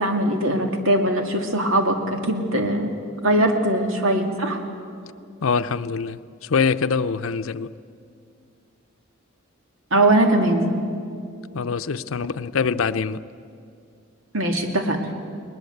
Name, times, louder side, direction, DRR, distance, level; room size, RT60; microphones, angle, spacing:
voice 1, 0.0-2.9 3.2-4.6 9.9-10.7 14.3-15.0, right 1 dB, 80° right, 2.5 m, -21 dB
voice 2, 5.4-7.7 11.5-13.2, left 5 dB, 85° left, 0.6 m, -24 dB
20.5 x 20.5 x 8.0 m
head